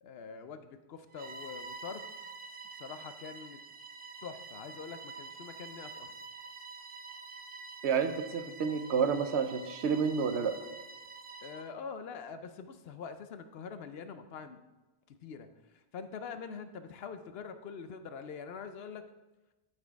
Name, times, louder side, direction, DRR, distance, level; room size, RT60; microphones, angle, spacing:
voice 1, 0.0-2.1 2.8-3.6 4.2-6.1 11.4-14.6 15.1-15.5 15.9-19.0, left 6 dB, 70° left, 10 dB, 0.8 m, -44 dB
Bowed string instrument, 1.1-11.7, right 4 dB, 45° right, 0.4 m, -47 dB
voice 2, 7.8-10.6, right 6 dB, 85° right, 9 dB, 1.0 m, -30 dB
11.5 x 4.3 x 4.6 m, 1.1 s
omnidirectional pair, 1.1 m